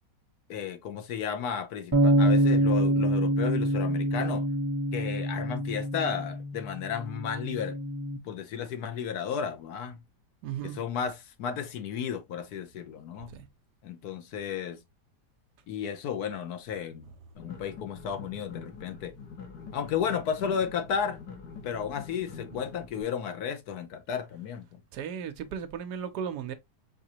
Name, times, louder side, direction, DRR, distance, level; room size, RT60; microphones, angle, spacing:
voice 1, 0.5-4.5 4.9-7.8 8.2-10.0 10.6-13.3 13.8-14.8 15.7-17.1 17.4-19.2 19.7-21.2 21.6-24.8, left 7 dB, 70° left, 1.2 m, -33 dB
sound 1, 1.9-8.2, equal, 20° right, 0.5 m, -26 dB
voice 2, 10.4-10.8 13.3-13.5 22.6-22.7 24.9-26.5, right 8 dB, 75° right, 1.2 m, -36 dB
sound 2, 17.3-23.0, left 5 dB, 85° left, 1.7 m, -45 dB
4.9 x 3.7 x 2.8 m
omnidirectional pair, 1.9 m